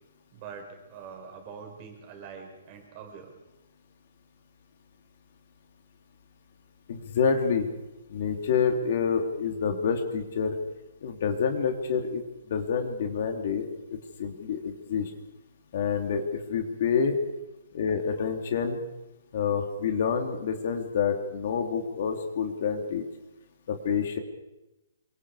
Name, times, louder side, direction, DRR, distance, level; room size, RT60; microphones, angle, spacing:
voice 1, 0.3-3.3, right 6 dB, 20° right, 3 dB, 5.2 m, -44 dB
voice 2, 6.9-7.7 8.1-10.6 11.0-12.2 12.5-15.1 15.7-16.2 16.5-17.2 17.7-18.8 19.3-23.0 23.7-24.2, left 6 dB, 40° left, 5 dB, 3.0 m, -27 dB
28.5 x 25.5 x 4.9 m, 0.97 s
hypercardioid pair, 180°, 0 cm